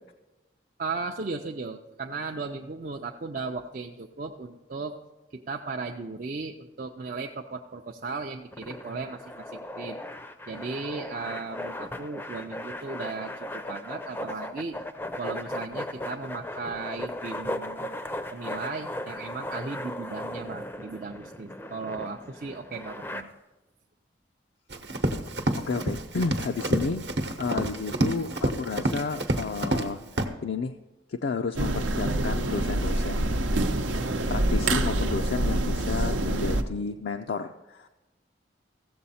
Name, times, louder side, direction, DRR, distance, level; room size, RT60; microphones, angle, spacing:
voice 1, 0.8-5.0 5.3-10.0 10.5-14.8 15.2-17.9 18.3-23.3, right 4 dB, 45° right, 1 dB, 0.5 m, -36 dB
sound 1, 8.5-23.2, left 1 dB, 10° left, 0.5 m, -37 dB
Run, 24.7-29.9 30.2-30.3, right 1 dB, 65° right, 0.9 m, -28 dB
voice 2, 25.6-27.1 27.4-30.0 30.4-30.8 31.1-33.6 34.3-37.9, left 4 dB, 70° left, 5 dB, 0.4 m, -32 dB
sound 2, 31.6-36.6, right 1 dB, 90° right, 0.8 m, -26 dB
15.0 x 7.7 x 4.2 m, 1.0 s
head